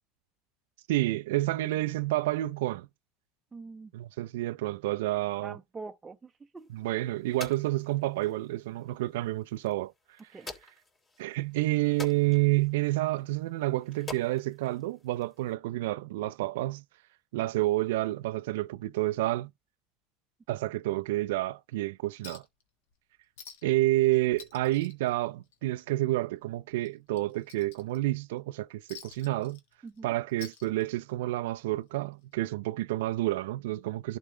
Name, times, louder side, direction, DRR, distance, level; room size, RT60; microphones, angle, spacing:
voice 1, 0.9-2.9 3.9-5.6 6.7-9.9 11.2-16.8 17.3-19.5 20.5-22.4 23.6-29.6 30.0-34.2, right 17 dB, 80° right, 0.4 m, -29 dB
voice 2, 3.5-3.9 5.4-6.7 10.3-10.5 29.8-30.1, right 4 dB, 20° right, 0.6 m, -44 dB
sound 1, 6.6-15.5, left 4 dB, 30° left, 3.3 m, -49 dB
Chink clink, 22.2-22.6 22.9-23.0 23.4-23.8 24.1-25.8 26.2-26.3 26.8-28.2 28.9-30.0 30.3-31.2 32.3-32.4, left 7 dB, 80° left, 1.6 m, -49 dB
11.5 x 4.3 x 3.2 m
supercardioid pair, 100°, 0 cm